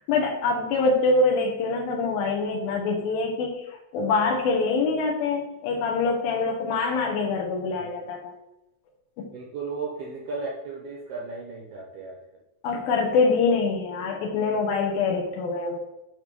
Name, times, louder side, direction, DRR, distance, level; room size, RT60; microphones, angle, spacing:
voice 1, 0.0-3.7 3.9-8.3 9.2-9.3 12.6-15.8, left 4 dB, 90° left, 0 dB, 2.8 m, -24 dB
voice 2, 9.3-12.2, right 4 dB, 85° right, -2 dB, 1.3 m, -35 dB
8.3 x 3.2 x 5.3 m, 0.92 s
omnidirectional pair, 4.1 m